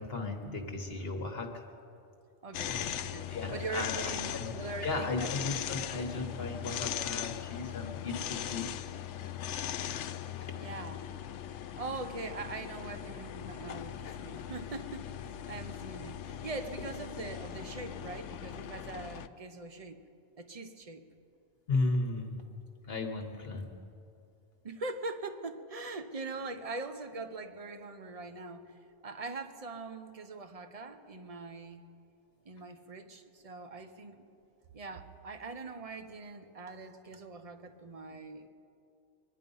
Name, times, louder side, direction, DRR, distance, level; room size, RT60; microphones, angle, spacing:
voice 1, 0.0-1.6 2.6-3.0 3.3-4.5 4.8-8.7 10.4-10.5 21.7-22.5 22.9-23.7, left 3 dB, 60° left, 2 dB, 1.4 m, -35 dB
voice 2, 2.4-5.4 5.7-5.9 10.6-11.1 11.8-20.0 20.4-21.0 24.6-31.9 32.4-34.2 34.7-38.5, right 3 dB, 35° right, 8 dB, 0.8 m, -42 dB
sound 1, 2.5-19.3, left 10 dB, 90° left, 0.9 m, -39 dB
23.5 x 10.5 x 5.4 m, 2.6 s
omnidirectional pair, 1.2 m